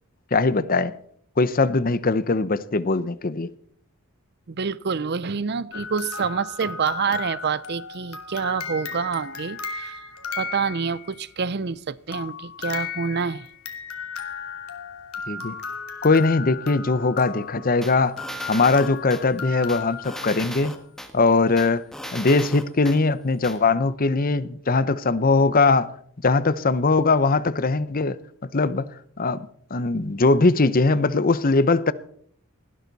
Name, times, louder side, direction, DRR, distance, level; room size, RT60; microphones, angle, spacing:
voice 1, 0.3-0.9 1.4-3.5 15.3-15.5 16.0-18.2 18.5-20.8 21.1-21.8 22.1-25.9 26.2-28.2 28.5-28.9 29.2-31.9, left 3 dB, 40° left, 0.7 m, -21 dB
voice 2, 4.5-10.0 10.3-13.5, right 5 dB, 50° right, 0.5 m, -27 dB
sound 1, 5.7-11.3 12.1-20.6, left 5 dB, 80° left, 2.7 m, -35 dB
sound 2, 17.8-19.2 19.7-21.1 21.6-23.0 23.4-23.6, equal, ahead, 1.7 m, -36 dB
20.0 x 16.0 x 4.1 m
head